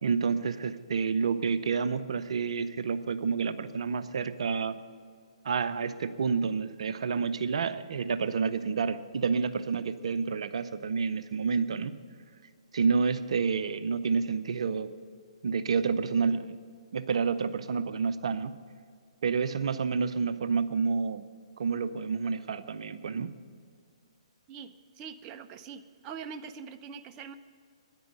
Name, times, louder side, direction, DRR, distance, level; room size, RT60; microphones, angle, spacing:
voice 1, 0.0-4.8 5.4-12.0 12.7-14.9 15.4-16.6 16.9-18.5 19.2-21.3 21.6-23.3, right 5 dB, 65° right, 13 dB, 0.6 m, -29 dB
voice 2, 24.5-27.3, right 6 dB, 25° right, 9 dB, 0.7 m, -43 dB
10.5 x 9.2 x 8.8 m, 2.1 s
hypercardioid pair, 135°, 3 cm